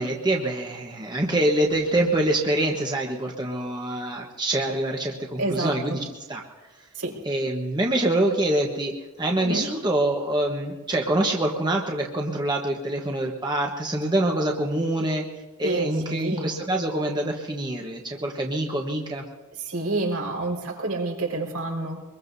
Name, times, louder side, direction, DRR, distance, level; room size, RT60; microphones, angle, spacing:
voice 1, 0.0-6.0 6.3-6.4 7.2-8.9 9.2-15.2 15.6-19.2, right 1 dB, 20° right, 0 dB, 1.2 m, -25 dB
voice 2, 5.4-6.0 7.0-7.2 9.4-9.7 15.6-16.5 19.6-22.0, right 2 dB, 80° right, 0 dB, 4.8 m, -28 dB
24.0 x 22.0 x 2.7 m, 1.2 s
head